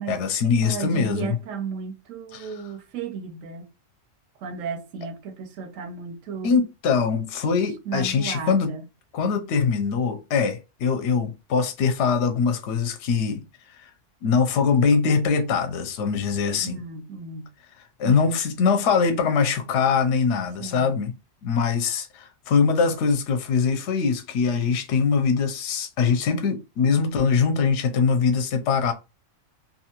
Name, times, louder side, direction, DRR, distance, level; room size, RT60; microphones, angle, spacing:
voice 1, 0.1-1.4 2.3-2.5 6.4-8.7 9.1-13.4 13.8-13.9 14.2-16.8 18.0-21.1 21.4-28.9, left 5 dB, 70° left, 0.8 m, -22 dB
voice 2, 0.6-3.7 4.4-6.6 7.9-8.8 16.6-17.5 18.1-18.2 20.6-21.0, right 6 dB, 90° right, 1.0 m, -34 dB
2.7 x 2.4 x 2.8 m
omnidirectional pair, 1.3 m